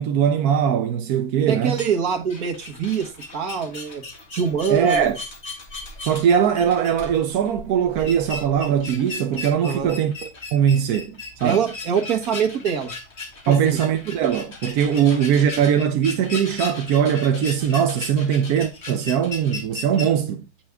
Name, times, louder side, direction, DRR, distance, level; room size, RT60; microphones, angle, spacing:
voice 1, 0.0-1.8 4.7-5.2 6.0-11.6 13.5-20.4, right 8 dB, 90° right, 1.1 m, -21 dB
voice 2, 1.5-4.0 4.3-5.1 9.6-9.9 11.4-12.9 13.5-13.8 14.9-15.0, right 7 dB, 75° right, 1.8 m, -24 dB
sound 1, 1.7-20.1, left 3 dB, 45° left, 2.1 m, -37 dB
7.9 x 5.9 x 3.5 m
omnidirectional pair, 1.6 m